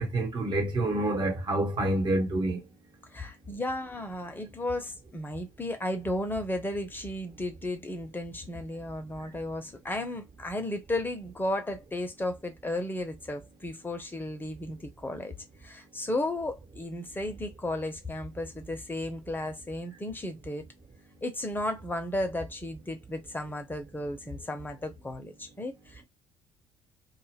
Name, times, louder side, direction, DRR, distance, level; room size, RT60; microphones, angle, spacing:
voice 1, 0.0-2.7 9.2-9.3, right 1 dB, 45° right, 1.4 m, -28 dB
voice 2, 3.1-15.3 15.6-20.6 21.2-26.0, left 1 dB, 20° left, 0.9 m, -34 dB
2.4 x 2.4 x 3.4 m
figure-of-eight pair, 50°, 11 cm